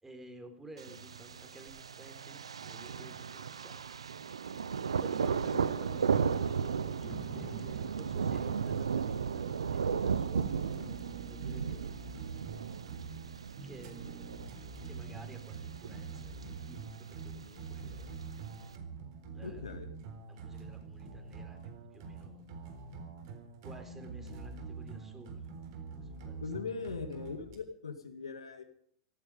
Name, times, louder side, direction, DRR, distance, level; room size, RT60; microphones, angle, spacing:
voice 1, 0.0-3.8 5.0-11.9 13.6-14.3 14.9-18.2 19.3-19.8 20.3-21.6 21.9-22.4 23.6-25.7 26.0-26.8, right 1 dB, 10° right, 6 dB, 4.0 m, -53 dB
Thunder, 0.8-18.8, right 6 dB, 90° right, 0.7 m, -35 dB
sound 1, 10.4-27.6, right 4 dB, 60° right, 3.8 m, -46 dB
Thunder 2, 18.8-19.7 20.0-20.3, right 3 dB, 30° right, 6.6 m, -56 dB
voice 2, 19.3-19.9 26.4-28.6, left 5 dB, 90° left, 6 dB, 1.8 m, -40 dB
17.0 x 14.0 x 5.1 m, 0.63 s
hypercardioid pair, 100°, 3 cm